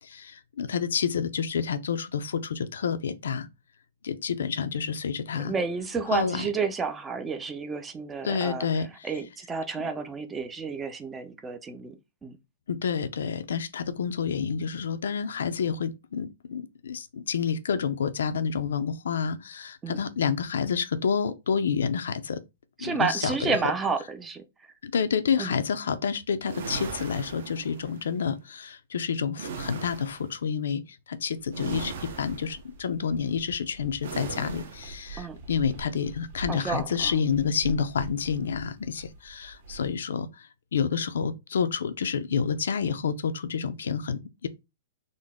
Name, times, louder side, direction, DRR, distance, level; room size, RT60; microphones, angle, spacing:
voice 1, 0.0-3.5 4.0-5.5 6.1-6.4 8.2-8.9 12.7-22.4 22.8-23.6 24.8-44.5, left 6 dB, 90° left, 0.5 m, -29 dB
voice 2, 5.3-8.7 9.0-12.0 12.2-12.4 19.8-20.0 22.8-24.7 25.4-25.5 35.2-35.4 36.5-37.2, right 5 dB, 10° right, 0.4 m, -31 dB
sound 1, 26.4-28.0 29.3-30.3 31.5-32.6 34.0-35.0, right 5 dB, 65° right, 1.0 m, -38 dB
sound 2, 31.4-39.9, right 3 dB, 45° right, 1.0 m, -45 dB
3.8 x 2.1 x 3.4 m
hypercardioid pair, 165°, 0 cm